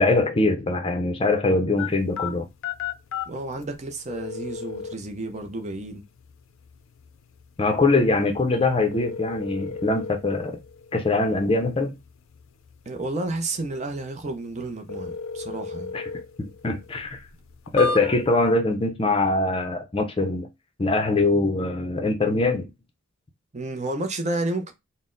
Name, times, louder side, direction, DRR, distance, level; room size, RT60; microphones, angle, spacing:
voice 1, 0.0-2.5 7.6-10.5 10.9-11.9 15.9-16.1 16.4-17.2 17.7-20.5 20.8-22.6, left 2 dB, 25° left, 0.5 m, -22 dB
sound 1, 1.8-18.5, left 4 dB, 75° left, 0.5 m, -37 dB
voice 2, 3.3-6.0 12.9-15.9 23.5-24.7, right 2 dB, 35° right, 0.6 m, -31 dB
4.1 x 2.1 x 3.7 m
head